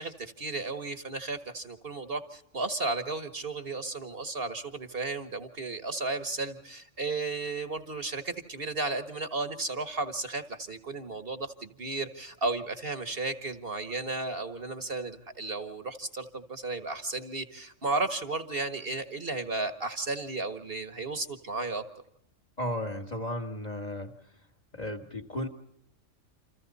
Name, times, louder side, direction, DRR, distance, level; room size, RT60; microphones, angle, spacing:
voice 1, 0.0-21.8, right 3 dB, 50° right, 9 dB, 1.6 m, -34 dB
voice 2, 22.6-24.1 24.7-25.5, left 1 dB, 30° left, 6 dB, 2.0 m, -34 dB
29.0 x 26.5 x 4.2 m, 0.76 s
omnidirectional pair, 1.3 m